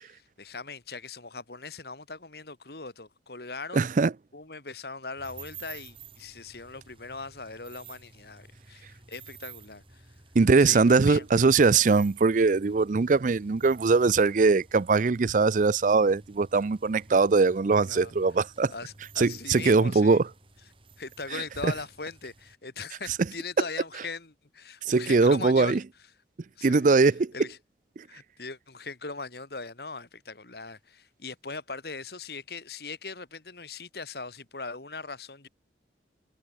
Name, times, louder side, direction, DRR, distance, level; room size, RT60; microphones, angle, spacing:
voice 1, 0.0-3.9 4.3-10.0 10.6-11.5 17.9-18.1 18.7-20.2 21.0-25.8 26.6-26.9 27.3-27.6 28.1-35.5, left 4 dB, 60° left, 2.2 m, -40 dB
voice 2, 3.7-4.1 10.3-18.7 19.2-20.3 21.3-21.7 24.9-25.8 26.6-27.3 28.0-28.1, right 4 dB, 45° right, 0.4 m, -21 dB
sound 1, 5.2-22.6, right 5 dB, 30° right, 3.5 m, -52 dB
head